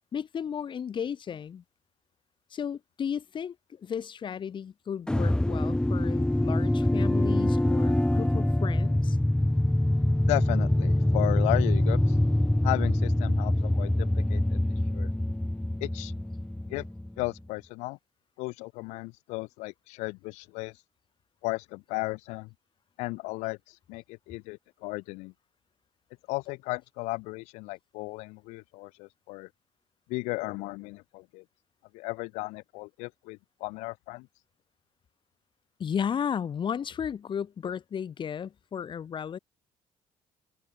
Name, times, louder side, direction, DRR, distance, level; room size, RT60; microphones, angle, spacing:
voice 1, 0.1-1.6 2.5-9.2 35.8-39.4, left 8 dB, 45° left, 1.0 m, -34 dB
sound 1, 5.1-17.3, left 1 dB, 5° left, 1.3 m, -25 dB
voice 2, 10.2-12.2 12.6-14.6 14.9-15.1 15.8-16.1 16.7-16.8 17.2-18.0 18.4-20.8 21.4-22.5 23.0-25.3 26.3-29.5 30.1-31.4 31.9-34.3, left 24 dB, 80° left, 0.5 m, -35 dB
supercardioid pair, 65°, 12 cm